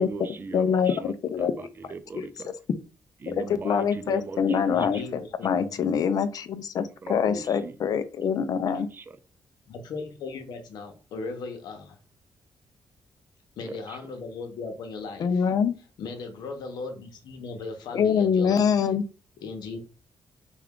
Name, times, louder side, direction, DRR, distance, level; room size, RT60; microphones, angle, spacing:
voice 1, 0.0-2.5 3.2-5.0 7.0-7.8 8.9-9.2 13.6-14.0, right 4 dB, 30° right, 0.4 m, -39 dB
voice 2, 0.5-1.5 2.1-2.5 3.3-8.9 15.2-15.8 17.9-19.0, left 7 dB, 60° left, 0.5 m, -25 dB
voice 3, 4.7-6.0 9.7-12.0 13.6-15.5 16.0-18.9 19.4-19.8, left 4 dB, 85° left, 0.8 m, -37 dB
3.5 x 2.3 x 3.6 m
cardioid pair, 115°, 7 cm